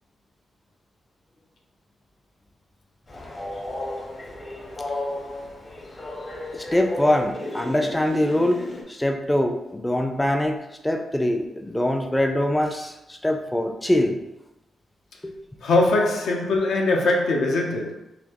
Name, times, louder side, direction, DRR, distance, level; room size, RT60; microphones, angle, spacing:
Train, 3.1-8.8, left 1 dB, 35° left, 0.8 m, -34 dB
voice 1, 6.5-10.6 10.8-14.2 15.2-15.3, left 1 dB, 10° left, 3 dB, 0.4 m, -23 dB
voice 2, 15.6-17.9, left 2 dB, 80° left, 0 dB, 0.7 m, -21 dB
4.2 x 2.6 x 2.9 m, 0.94 s
cardioid pair, 90°, 0 cm